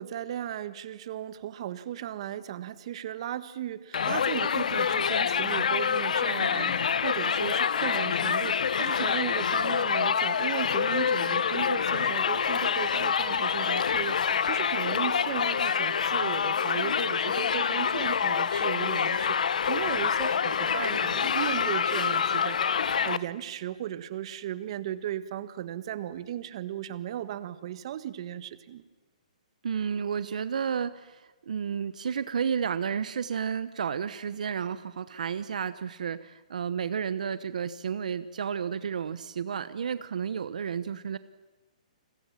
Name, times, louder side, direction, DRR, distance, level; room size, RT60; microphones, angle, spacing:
voice 1, 0.0-28.8, right 11 dB, 45° right, 14 dB, 1.5 m, -36 dB
Crowd, 3.9-23.2, left 7 dB, 75° left, 1.0 m, -26 dB
voice 2, 29.6-41.2, right 7 dB, 75° right, 14 dB, 1.0 m, -32 dB
30.0 x 23.0 x 7.4 m, 1.1 s
hypercardioid pair, 160°, 4 cm